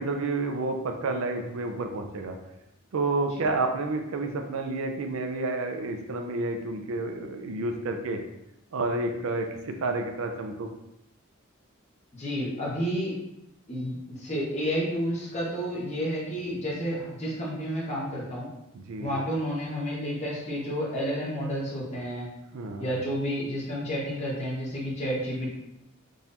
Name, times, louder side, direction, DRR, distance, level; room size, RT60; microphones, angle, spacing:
voice 1, 0.0-2.4 2.9-8.2 8.7-10.7 18.7-19.2 22.5-22.9, right 2 dB, 70° right, 5 dB, 0.4 m, -30 dB
voice 2, 12.1-13.1 13.7-18.5 19.0-22.3 22.8-25.5, equal, 30° left, -6 dB, 1.0 m, -30 dB
3.9 x 2.8 x 2.6 m, 0.87 s
head